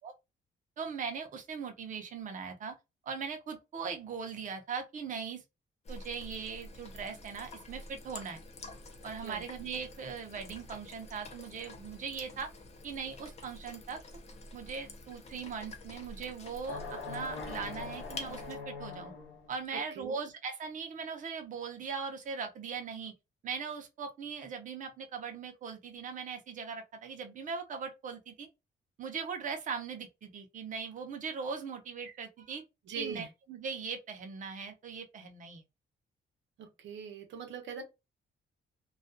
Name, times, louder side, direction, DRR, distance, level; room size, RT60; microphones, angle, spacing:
voice 1, 0.8-2.7 3.1-5.4 5.9-8.4 9.0-12.5 12.8-14.0 14.5-19.1 19.5-23.1 23.4-28.5 29.0-32.6 33.0-35.6, right 5 dB, 40° right, 0.6 m, -40 dB
sound 1, 5.8-18.6, left 2 dB, 35° left, 0.4 m, -48 dB
sound 2, 16.6-19.5, left 4 dB, 80° left, 0.7 m, -42 dB
voice 2, 19.7-20.2 32.0-32.1 32.9-33.3 36.6-37.8, right 6 dB, 80° right, 0.7 m, -42 dB
2.3 x 2.2 x 2.5 m
wide cardioid pair, 170°, 19 cm